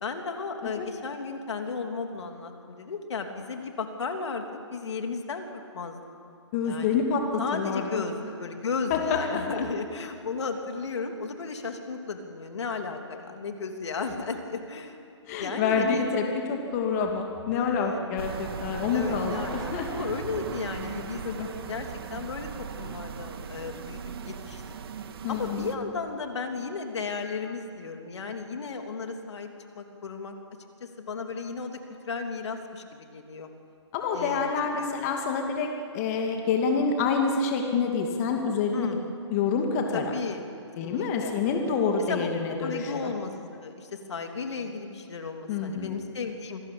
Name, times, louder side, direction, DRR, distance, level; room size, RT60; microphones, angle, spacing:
voice 1, 0.0-5.4 5.7-6.0 6.6-7.0 7.4-15.0 15.4-16.1 17.5-18.0 18.6-21.2 21.7-24.6 25.3-29.5 29.7-30.3 30.8-31.8 32.0-33.5 34.1-34.5 34.8-34.9 38.7-39.1 39.9-40.5 40.8-41.3 42.1-42.3 42.6-43.3 43.6-46.6, left 4 dB, 70° left, 4 dB, 3.2 m, -34 dB
voice 2, 6.5-8.0 8.9-9.6 15.3-20.1 21.2-21.5 25.2-25.7 33.9-38.9 39.3-40.1 40.8-43.1 45.5-46.0, left 5 dB, 35° left, 2 dB, 2.6 m, -27 dB
sound 1, 18.2-25.8, right 7 dB, 55° right, 1.9 m, -38 dB
26.5 x 20.0 x 8.7 m, 2.5 s
hypercardioid pair, 150°, 15 cm